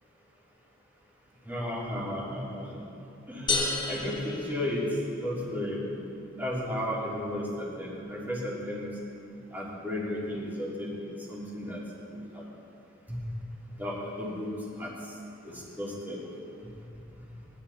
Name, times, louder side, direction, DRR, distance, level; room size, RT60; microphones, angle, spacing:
voice 1, 1.4-2.8 3.3-4.9 5.2-5.9 6.4-8.9 9.5-11.8 12.1-12.4 13.1-13.3 13.8-14.5 14.8-14.9 15.4-16.2, left 1 dB, 10° right, -7 dB, 3.3 m, -34 dB
sound 1, 3.5-5.3, left 3 dB, 20° left, 1.3 m, -31 dB
19.5 x 12.0 x 4.3 m, 2.7 s
head